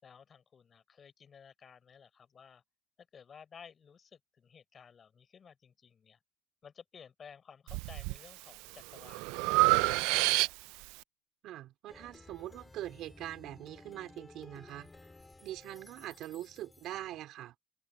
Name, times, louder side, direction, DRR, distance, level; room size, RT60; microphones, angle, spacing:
voice 1, 0.0-2.6 3.0-6.2 6.6-10.5, left 6 dB, 30° left, 4.8 m, -55 dB
Breathing, 7.7-8.2 8.7-10.9, right 23 dB, 80° right, 0.4 m, -28 dB
voice 2, 11.4-14.9 15.4-17.6, right 14 dB, 60° right, 3.5 m, -43 dB
Plucked string instrument, 11.9-17.2, left 2 dB, 10° left, 3.1 m, -55 dB
cardioid pair, 120°, 0 cm